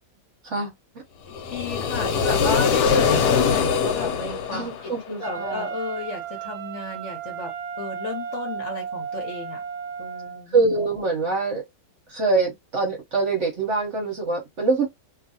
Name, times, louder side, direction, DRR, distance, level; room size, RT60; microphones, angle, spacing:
sound 1, 1.3-5.3, left 6 dB, 80° left, 1.1 m, -22 dB
voice 1, 1.5-4.9 5.2-9.6 10.0-10.6, left 4 dB, 55° left, 1.0 m, -33 dB
voice 2, 4.5-5.7 10.5-11.6 12.1-14.9, right 3 dB, 55° right, 1.0 m, -24 dB
Wind instrument woodwind instrument, 5.2-10.4, right 7 dB, 80° right, 1.1 m, -34 dB
2.8 x 2.5 x 2.6 m
omnidirectional pair, 1.8 m